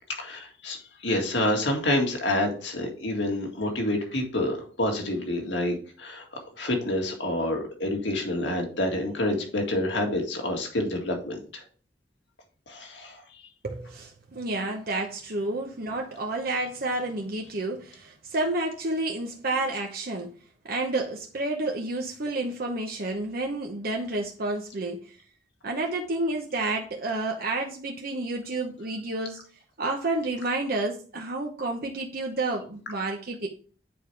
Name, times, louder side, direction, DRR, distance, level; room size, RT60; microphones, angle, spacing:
voice 1, 0.2-0.8 1.0-6.3 6.6-11.6 12.7-13.2, left 1 dB, 75° left, 2.0 m, -28 dB
voice 2, 13.6-20.4 20.6-25.2 25.6-29.4 29.8-33.5, right 2 dB, 55° right, 0.9 m, -30 dB
9.1 x 4.8 x 3.3 m
head